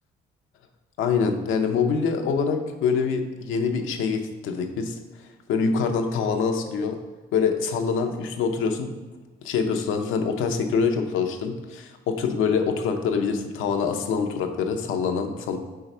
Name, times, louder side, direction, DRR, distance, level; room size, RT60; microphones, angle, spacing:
voice 1, 1.0-5.0 5.5-7.0 7.3-8.9 9.4-15.6, left 5 dB, 90° left, 5 dB, 0.7 m, -25 dB
4.7 x 4.0 x 5.4 m, 1.3 s
cardioid pair, 90°, 20 cm